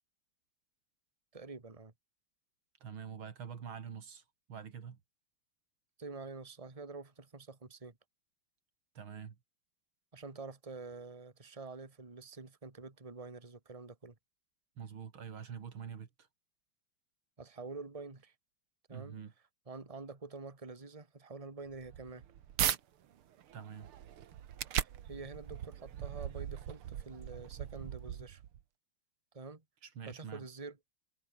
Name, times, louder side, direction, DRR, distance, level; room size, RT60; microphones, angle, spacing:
voice 1, 1.3-1.9 6.0-8.0 10.1-14.2 17.4-18.3 18.9-19.2 19.7-22.2 24.8-28.4 29.3-29.6 30.1-30.8, right 3 dB, 15° right, 2.2 m, -47 dB
voice 2, 2.8-4.2 4.5-5.0 8.9-9.4 14.8-16.3 18.9-19.3 23.5-23.9 29.8-30.5, right 7 dB, 70° right, 2.8 m, -45 dB
sound 1, 21.7-22.8 23.3-28.6, right 10 dB, 85° right, 2.2 m, -38 dB
omnidirectional pair, 2.4 m